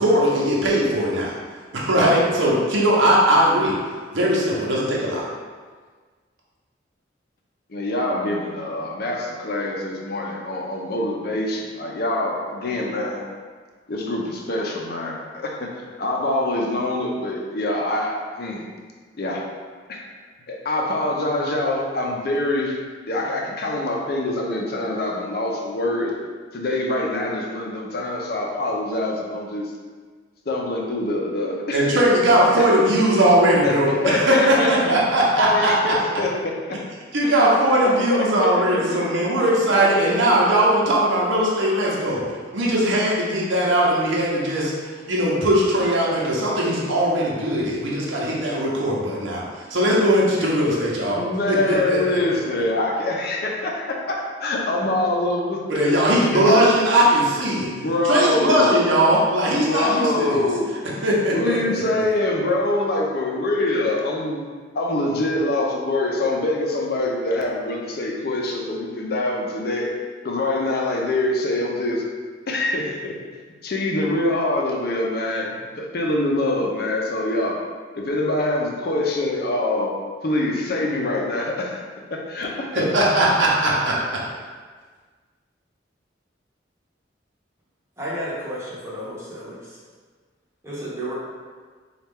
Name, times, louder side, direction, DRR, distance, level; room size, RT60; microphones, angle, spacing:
voice 1, 0.0-1.3 1.7-3.7 4.1-5.2 31.7-35.9 37.1-42.2 42.5-49.4 49.7-51.2 51.5-52.2 55.7-57.7 58.1-60.4 61.0-61.8 82.7-84.2, right 1 dB, 85° right, -4 dB, 0.8 m, -19 dB
voice 2, 7.7-13.2 13.9-18.6 19.2-19.5 19.9-20.0 20.5-22.8 23.1-26.2 26.5-29.7 30.5-31.9 32.6-32.7 33.6-34.9 35.4-36.5 37.2-37.3 37.8-39.0 39.7-40.2 50.3-50.5 51.1-56.8 57.6-58.9 59.6-60.7 61.3-64.4 64.7-69.9 70.2-72.0 72.5-73.2 73.6-77.6 77.9-79.9 80.2-81.8 82.1-82.9, left 2 dB, 55° left, 0 dB, 0.5 m, -24 dB
voice 3, 88.0-89.8 90.6-91.1, right 1 dB, 15° right, -8 dB, 0.8 m, -32 dB
4.2 x 2.4 x 3.5 m, 1.5 s
head